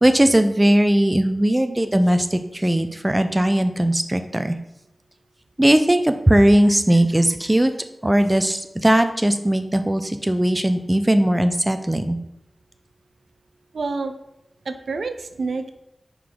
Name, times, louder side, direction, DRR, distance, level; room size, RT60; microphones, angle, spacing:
voice 1, 0.0-4.6 5.6-7.7 8.0-12.2, right 1 dB, 20° right, 8 dB, 0.5 m, -18 dB
voice 2, 13.7-14.1 14.7-15.7, right 4 dB, 90° right, 9 dB, 0.4 m, -28 dB
5.8 x 4.7 x 3.7 m, 0.84 s
wide cardioid pair, 60°, 0 cm